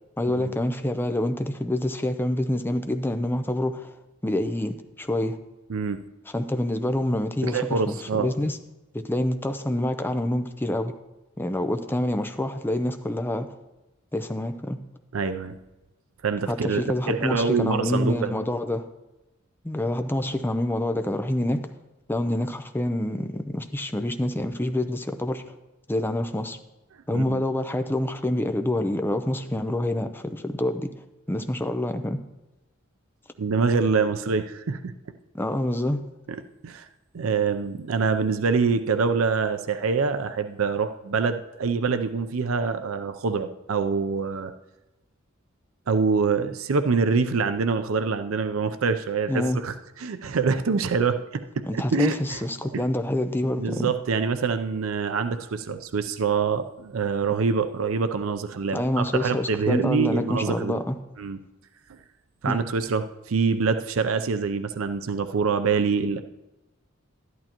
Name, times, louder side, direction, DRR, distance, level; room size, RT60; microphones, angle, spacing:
voice 1, 0.2-3.9 4.2-5.4 6.3-8.6 8.9-11.0 11.4-13.5 14.1-14.8 16.5-18.8 19.6-21.6 22.1-25.5 25.9-26.6 27.1-30.9 31.3-32.2 35.3-36.1 49.3-49.6 51.6-53.9 58.7-61.0 62.4-62.6, left 1 dB, 10° left, 8 dB, 0.5 m, -27 dB
voice 2, 7.4-8.3 15.1-15.6 16.2-18.3 27.1-27.4 33.4-34.9 36.3-36.4 36.6-36.8 37.1-44.5 45.9-49.7 50.0-51.2 51.7-52.4 52.7-52.8 53.6-60.8 61.2-61.4 61.9-62.0 62.4-66.2, right 5 dB, 85° right, 9 dB, 0.5 m, -25 dB
12.0 x 11.0 x 2.9 m, 0.99 s
head